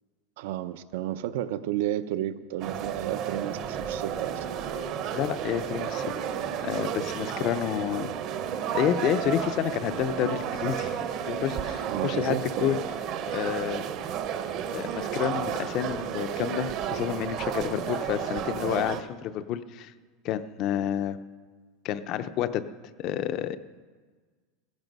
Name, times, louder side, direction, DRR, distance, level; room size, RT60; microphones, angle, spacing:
voice 1, 0.4-4.4 11.9-12.7, right 12 dB, 65° right, 13 dB, 0.6 m, -32 dB
sound 1, 2.6-19.0, right 8 dB, 35° right, 0.8 m, -32 dB
voice 2, 5.1-6.1 6.6-8.1 8.7-12.8 13.3-13.8 14.7-19.9 20.2-21.2 21.8-22.6 23.0-23.6, left 10 dB, 35° left, 12 dB, 0.6 m, -29 dB
15.5 x 15.0 x 5.3 m, 1.5 s
supercardioid pair, 175°, 0 cm